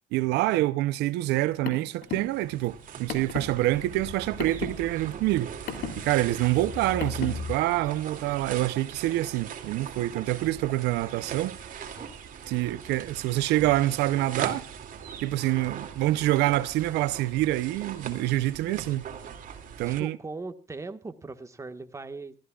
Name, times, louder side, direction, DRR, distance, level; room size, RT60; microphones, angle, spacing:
voice 1, 0.1-5.5 6.0-11.6 12.5-14.6 15.2-19.0 19.8-20.2, right 16 dB, 85° right, 0.7 m, -26 dB
Car, 1.3-7.5, left 6 dB, 70° left, 3.2 m, -37 dB
sound 1, 2.0-20.0, right 7 dB, 55° right, 2.5 m, -41 dB
voice 2, 11.8-12.1 18.6-18.9 19.9-22.3, right 3 dB, 15° right, 1.5 m, -40 dB
23.5 x 14.0 x 2.4 m
cardioid pair, 110°, 17 cm